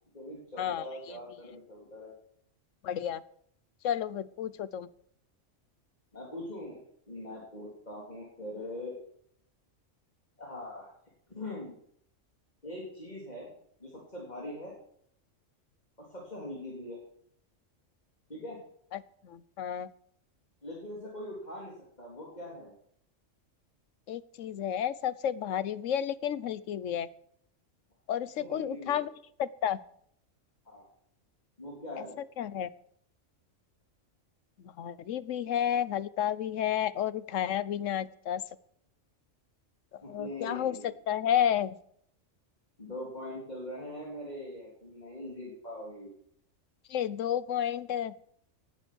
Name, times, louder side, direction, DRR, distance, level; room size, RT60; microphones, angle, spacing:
voice 1, 0.1-2.1 6.1-6.8 7.1-9.0 10.4-10.9 11.3-11.7 12.6-13.5 13.8-14.8 16.0-17.0 18.3-18.6 20.6-22.7 28.4-29.1 30.7-30.9 31.6-32.2 40.0-40.9 42.8-46.1, left 1 dB, 35° left, -4 dB, 3.7 m, -42 dB
voice 2, 2.8-3.2 3.8-4.9 18.9-19.9 24.1-27.1 28.1-29.1 29.4-29.8 32.4-32.7 34.8-38.4 40.1-41.7 46.9-48.1, left 10 dB, 80° left, 17 dB, 1.1 m, -31 dB
19.0 x 9.8 x 6.2 m, 0.67 s
omnidirectional pair, 1.3 m